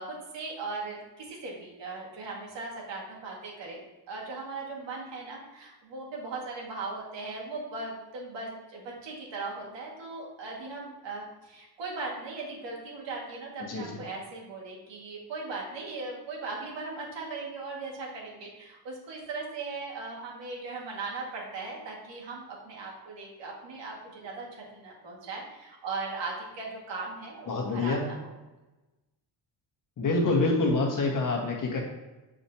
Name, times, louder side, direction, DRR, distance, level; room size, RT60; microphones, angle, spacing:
voice 1, 0.0-3.8 4.1-28.3, right 3 dB, 70° right, -2 dB, 2.2 m, -38 dB
voice 2, 27.5-28.0 30.0-31.8, left 3 dB, 45° left, -1 dB, 1.6 m, -26 dB
7.7 x 5.1 x 2.9 m, 1.1 s
cardioid pair, 150°, 45 cm